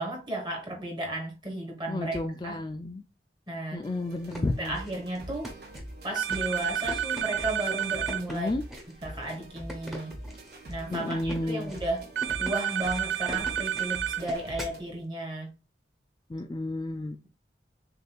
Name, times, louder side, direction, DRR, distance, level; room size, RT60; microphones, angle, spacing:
voice 1, 0.0-2.6 3.5-3.8 4.6-5.5 6.0-8.5 9.0-10.1 10.7-12.1 12.4-15.5, right 1 dB, 25° right, 1.4 m, -34 dB
voice 2, 1.9-3.0 3.7-4.8 6.9-7.1 8.3-8.6 10.9-11.7 16.3-17.2, left 2 dB, 25° left, 0.3 m, -32 dB
sound 1, 3.8-14.8, right 1 dB, 60° right, 1.3 m, -44 dB
sound 2, 4.1-14.8, equal, ahead, 1.0 m, -42 dB
sound 3, 6.1-8.2 12.2-14.2, right 10 dB, 75° right, 0.4 m, -30 dB
6.4 x 2.6 x 2.3 m
head